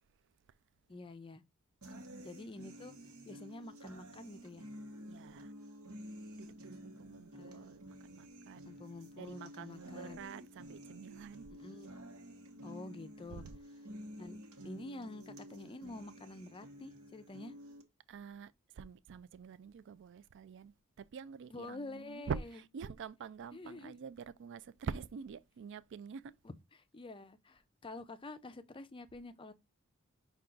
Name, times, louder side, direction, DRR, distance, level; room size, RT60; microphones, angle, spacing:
voice 1, 0.9-1.4 2.2-2.9 3.3-4.6 7.3-7.7 8.6-10.2 11.5-11.9 12.6-13.4 14.2-14.4 14.6-17.5 21.5-22.3 23.5-23.9 26.4-26.5 26.9-29.5, left 2 dB, 25° left, 0.4 m, -48 dB
sound 1, 1.8-17.8, equal, 75° right, 1.0 m, -51 dB
voice 2, 1.9-2.3 5.1-5.5 6.4-8.7 9.2-11.5 13.3-13.5 18.1-26.3, right 6 dB, 60° right, 0.3 m, -46 dB
5.6 x 2.3 x 3.7 m
head